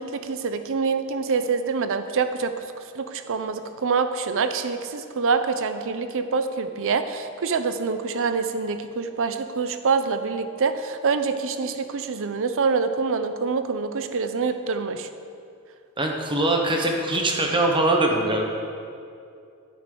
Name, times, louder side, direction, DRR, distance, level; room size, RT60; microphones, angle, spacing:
voice 1, 0.0-2.5 2.9-15.1, right 5 dB, 60° right, 9 dB, 0.6 m, -25 dB
voice 2, 16.0-18.5, right 2 dB, 20° right, 1 dB, 1.0 m, -22 dB
9.5 x 9.5 x 3.8 m, 2.4 s
head